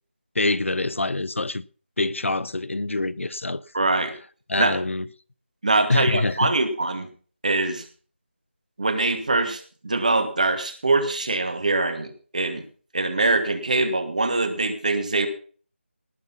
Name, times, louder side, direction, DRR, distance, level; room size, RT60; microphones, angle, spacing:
voice 1, 0.3-1.6 2.0-3.6 4.5-5.1 5.9-6.5, left 2 dB, 85° left, 0.9 m, -25 dB
voice 2, 3.7-4.1 4.6-4.8 5.6-7.1 7.4-7.8 8.8-12.6 12.9-15.3, right 2 dB, 35° right, 2.4 m, -23 dB
19.0 x 7.1 x 5.9 m
figure-of-eight pair, 180°, 7 cm